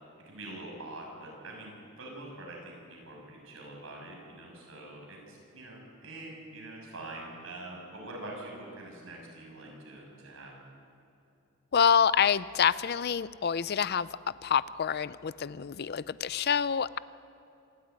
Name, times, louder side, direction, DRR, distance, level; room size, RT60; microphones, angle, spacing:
voice 1, 0.2-10.6, right 2 dB, 70° right, -1 dB, 6.9 m, -44 dB
voice 2, 11.7-14.1 14.4-17.0, left 7 dB, 50° left, 18 dB, 0.5 m, -27 dB
26.0 x 13.0 x 9.5 m, 2.8 s
head